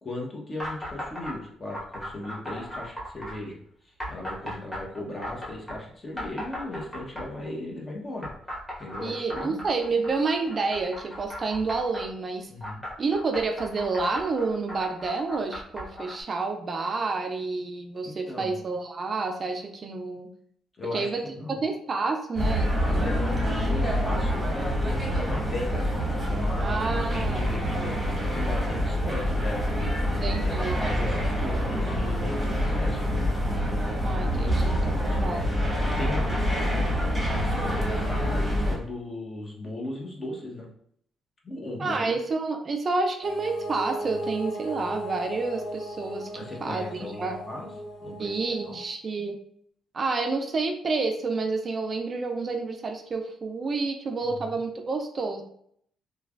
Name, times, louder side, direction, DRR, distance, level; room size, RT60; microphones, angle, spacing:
voice 1, 0.0-8.3 8.8-9.6 12.5-12.8 18.0-18.5 20.8-21.6 23.0-29.8 30.4-33.3 33.6-33.7 34.4-35.5 35.8-40.7 41.4-42.2 46.3-47.7 48.0-48.8 54.2-54.6, left 2 dB, 30° left, -1 dB, 0.9 m, -37 dB
sound 1, 0.6-1.3 1.7-3.4 4.0-5.8 6.2-7.5 8.2-12.1 12.6-16.2, equal, 15° left, 1.3 m, -37 dB
voice 2, 9.0-12.5 13.0-20.3 20.9-23.2 26.6-27.9 30.2-30.8 34.0-35.5 41.8-46.3 46.6-47.4 48.2-49.4 49.9-55.4, right 3 dB, 40° right, 5 dB, 0.4 m, -29 dB
sound 2, 22.4-38.8, equal, 5° right, 1.0 m, -26 dB
sound 3, 43.2-48.9, right 1 dB, 70° left, 1.2 m, -37 dB
3.2 x 2.3 x 2.3 m, 0.65 s
cardioid pair, 90°, 0 cm